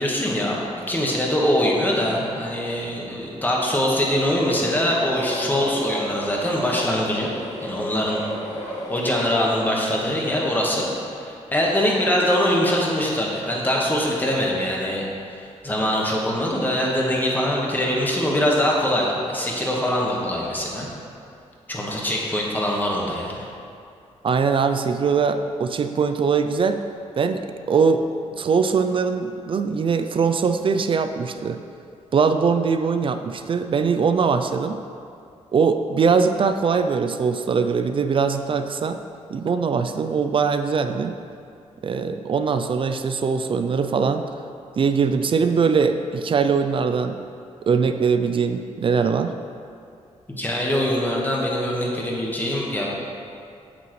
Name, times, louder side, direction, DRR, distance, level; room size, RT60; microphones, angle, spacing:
voice 1, 0.0-7.3 7.6-8.2 8.5-10.9 11.1-20.9 21.7-23.4 50.4-53.0, left 1 dB, 15° left, -3 dB, 1.5 m, -23 dB
sound 1, 4.3-9.4, left 1 dB, 65° left, 1.9 m, -33 dB
voice 2, 24.2-26.8 27.2-27.4 27.7-28.0 28.4-31.6 32.1-34.8 35.5-39.0 39.3-41.1 41.8-44.2 44.8-47.2 47.7-49.3, right 5 dB, 45° right, 8 dB, 0.4 m, -21 dB
8.1 x 7.5 x 3.2 m, 2.4 s
cardioid pair, 90°, 12 cm